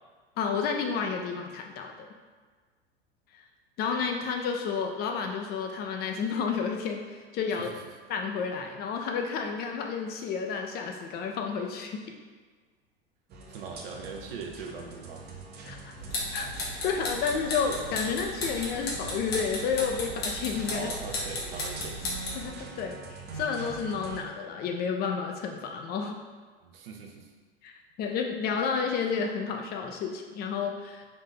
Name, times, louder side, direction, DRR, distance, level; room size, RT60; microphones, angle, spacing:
voice 1, 0.4-2.1 3.3-3.4 3.8-7.7 8.1-12.0 15.6-15.9 16.3-20.9 22.3-26.2 27.6-31.0, left 6 dB, 30° left, 3 dB, 0.4 m, -31 dB
sound 1, 13.3-24.2, right 4 dB, 35° right, 0.7 m, -44 dB
voice 2, 13.5-15.3 20.7-22.0 26.6-27.3, right 5 dB, 65° right, 2 dB, 0.7 m, -41 dB
sound 2, 16.0-22.5, left 1 dB, 75° left, 1.2 m, -35 dB
3.8 x 2.6 x 3.8 m, 1.5 s
hypercardioid pair, 95°, 31 cm